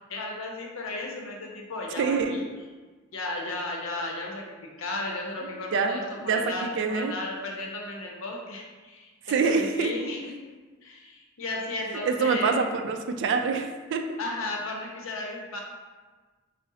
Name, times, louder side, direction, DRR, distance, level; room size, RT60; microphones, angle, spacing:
voice 1, 0.1-2.4 3.1-10.3 10.8-12.6 14.2-15.6, left 2 dB, 75° left, 0 dB, 0.7 m, -34 dB
voice 2, 2.0-2.5 5.7-6.0 6.3-7.1 9.3-9.9 12.0-14.0, right 5 dB, 60° right, 6 dB, 0.3 m, -25 dB
3.6 x 2.0 x 4.0 m, 1.3 s
head